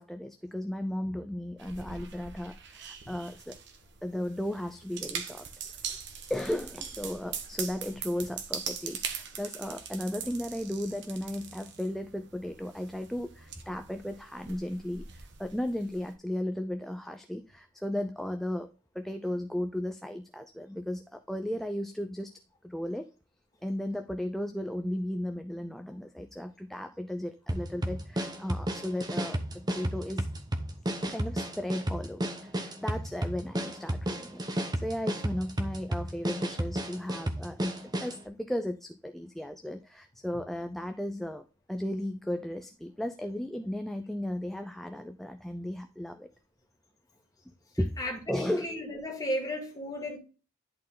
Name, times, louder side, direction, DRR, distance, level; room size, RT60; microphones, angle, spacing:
voice 1, 0.0-3.6 4.0-5.5 6.3-18.7 18.9-22.3 22.6-23.1 23.6-30.3 31.0-46.3 47.8-48.0 48.3-48.7, left 1 dB, ahead, 0.3 m, -35 dB
sound 1, 1.6-16.1, right 7 dB, 55° right, 1.2 m, -42 dB
sound 2, 27.5-38.2, right 1 dB, 20° right, 0.7 m, -33 dB
voice 2, 48.0-50.2, equal, 15° left, 2.0 m, -34 dB
10.5 x 4.3 x 3.7 m
head